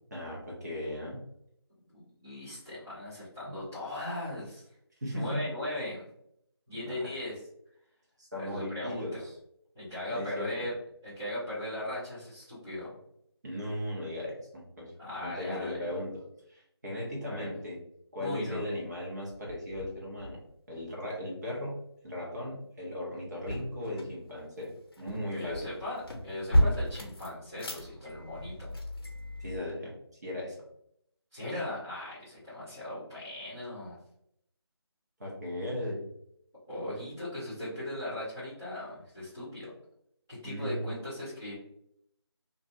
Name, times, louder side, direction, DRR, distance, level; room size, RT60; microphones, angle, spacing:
voice 1, 0.1-1.2 3.5-3.6 5.0-5.5 6.7-7.1 8.2-9.3 10.1-10.7 13.4-14.9 15.2-16.1 16.5-17.8 18.1-20.4 20.7-24.7 25.0-25.7 29.4-29.9 30.2-30.6 35.2-36.0 40.4-40.9, left 1 dB, 40° right, -3 dB, 1.0 m, -37 dB
voice 2, 1.9-4.7 5.1-6.1 6.7-7.4 8.3-9.2 9.7-10.7 11.0-12.9 15.0-15.8 17.2-17.5 18.2-18.6 25.3-28.7 31.3-34.0 36.7-39.7 40.3-41.5, left 1 dB, 5° right, -19 dB, 0.4 m, -38 dB
sound 1, 18.7-18.8 19.3-20.5 23.2-29.6, equal, 60° left, 0.6 m, -33 dB
2.9 x 2.5 x 2.5 m, 0.73 s
figure-of-eight pair, 165°, 14 cm